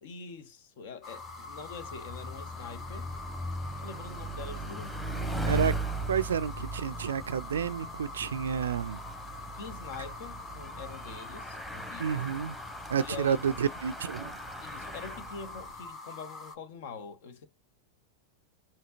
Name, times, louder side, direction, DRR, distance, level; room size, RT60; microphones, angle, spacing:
voice 1, 0.0-3.1 3.8-5.6 9.5-12.4 13.0-13.4 14.6-17.5, left 5 dB, 55° left, 0.9 m, -44 dB
sound 1, 1.0-16.6, left 3 dB, 30° left, 1.2 m, -45 dB
Bicycle, 1.2-15.8, right 2 dB, 10° left, 1.2 m, -39 dB
voice 2, 6.1-9.0 12.0-12.5 12.9-14.3, right 7 dB, 65° right, 0.4 m, -30 dB
7.6 x 2.8 x 2.5 m
figure-of-eight pair, 90°, 0 cm